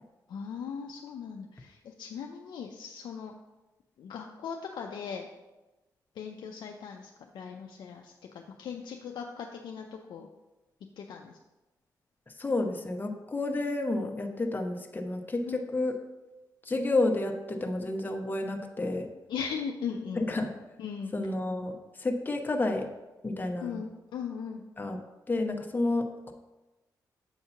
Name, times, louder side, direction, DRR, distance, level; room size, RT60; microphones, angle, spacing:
voice 1, 0.3-3.3 4.0-5.3 6.2-10.3 11.0-11.4 15.5-15.6 19.3-20.3 20.8-21.1 23.6-24.6, left 6 dB, 85° left, 2 dB, 0.5 m, -39 dB
voice 2, 12.4-16.0 16.6-19.1 20.2-20.5 21.1-21.7 22.0-22.9 23.2-23.8 24.8-25.0 25.3-26.3, left 2 dB, 25° left, 3 dB, 0.8 m, -30 dB
7.9 x 2.8 x 5.7 m, 1.1 s
cardioid pair, 70°, 8 cm